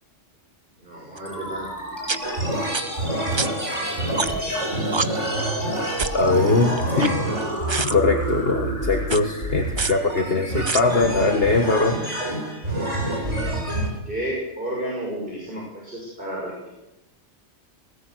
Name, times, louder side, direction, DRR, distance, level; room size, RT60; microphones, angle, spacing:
voice 1, 0.8-1.7 14.1-16.7, right 1 dB, 45° right, -4 dB, 6.6 m, -31 dB
sound 1, 1.2-1.3 2.1-2.2 2.7-2.8 3.4-3.5 4.2-4.5 4.9-5.1 6.0-6.2 6.8-7.4 7.7-7.9 9.0-9.2 9.8-9.9 10.7-10.8, right 4 dB, 25° right, 0.7 m, -25 dB
sound 2, 1.3-12.2, equal, 15° left, 7.0 m, -32 dB
sound 3, 2.2-13.9, right 1 dB, 85° right, 7.6 m, -28 dB
voice 2, 6.1-7.2 7.8-12.0, left 3 dB, 55° left, 4 dB, 1.8 m, -21 dB
20.5 x 18.5 x 7.9 m, 0.95 s
omnidirectional pair, 1.2 m